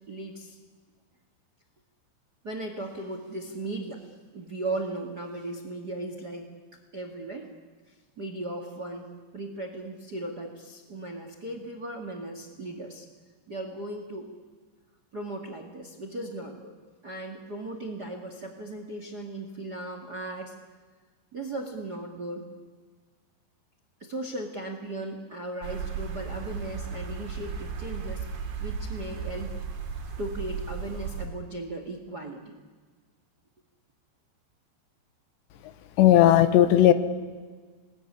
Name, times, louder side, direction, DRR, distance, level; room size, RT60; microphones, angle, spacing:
voice 1, 0.1-0.6 2.4-6.5 6.9-7.5 8.2-13.0 13.5-14.3 15.1-16.7 17.0-20.5 21.3-22.4 24.0-29.5 30.2-32.6, right 2 dB, 35° right, 5 dB, 1.6 m, -37 dB
sound 1, 25.6-31.3, right 5 dB, 60° right, 4.2 m, -35 dB
voice 2, 36.0-36.9, left 12 dB, 80° left, 11 dB, 3.4 m, -16 dB
27.0 x 20.5 x 10.0 m, 1.5 s
omnidirectional pair, 5.2 m